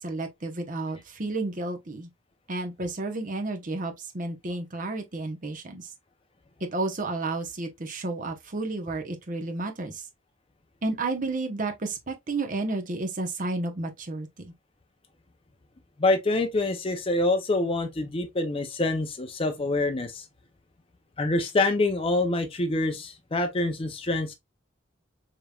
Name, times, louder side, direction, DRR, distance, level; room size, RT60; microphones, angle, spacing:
voice 1, 0.0-2.1 2.5-5.9 6.6-10.0 10.8-14.3, right 2 dB, 45° right, 0.9 m, -31 dB
voice 2, 16.0-20.2 21.2-24.3, left 2 dB, 30° left, 0.6 m, -26 dB
5.1 x 3.0 x 2.3 m
head